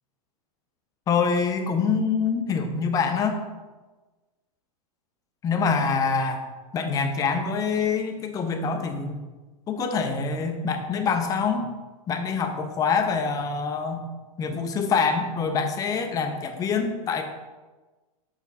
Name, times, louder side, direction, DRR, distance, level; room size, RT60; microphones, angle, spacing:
voice 1, 1.1-3.4 5.4-6.4 6.7-9.2 9.7-11.7 12.1-14.1 14.4-17.2, left 5 dB, 20° left, 6 dB, 0.7 m, -25 dB
7.2 x 4.4 x 4.1 m, 1.2 s
supercardioid pair, 150°, 19 cm